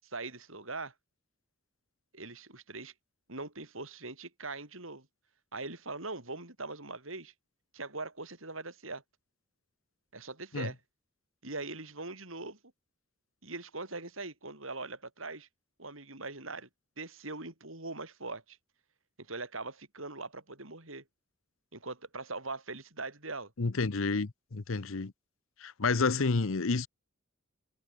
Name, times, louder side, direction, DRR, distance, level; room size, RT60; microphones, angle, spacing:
voice 1, 0.0-0.9 2.1-2.9 3.3-5.1 5.5-7.3 7.7-9.0 10.1-10.8 11.4-12.6 13.4-15.5 15.8-16.7 17.0-18.6 19.2-21.0 21.7-23.5, right 3 dB, 80° right, 7.6 m, -41 dB
voice 2, 23.6-25.1 25.6-26.9, left 4 dB, 85° left, 0.9 m, -30 dB
head